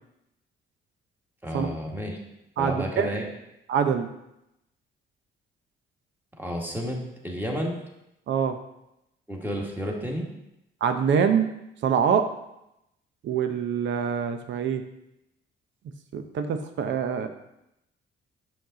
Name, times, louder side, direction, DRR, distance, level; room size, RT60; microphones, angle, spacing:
voice 1, 1.4-2.2 2.6-3.3 6.4-7.8 9.3-10.3, equal, 10° right, 0 dB, 1.6 m, -31 dB
voice 2, 2.6-3.1 3.7-4.1 8.3-8.6 10.8-11.5 11.8-12.2 13.2-14.8 16.1-17.3, right 7 dB, 70° right, 8 dB, 0.8 m, -24 dB
7.2 x 5.2 x 3.9 m, 0.85 s
cardioid pair, 90°, 20 cm